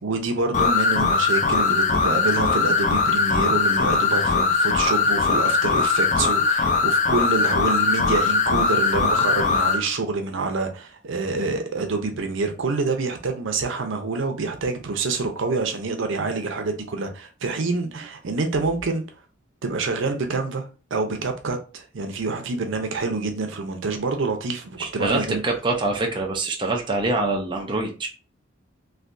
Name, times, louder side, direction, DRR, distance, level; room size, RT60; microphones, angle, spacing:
voice 1, 0.0-19.0 19.6-20.6 20.9-25.4, right 3 dB, 75° right, 0.6 m, -27 dB
sound 1, 0.5-9.8, left 4 dB, 40° left, 0.4 m, -20 dB
voice 2, 24.8-28.1, right 2 dB, 25° right, 0.6 m, -25 dB
3.3 x 2.6 x 2.5 m
head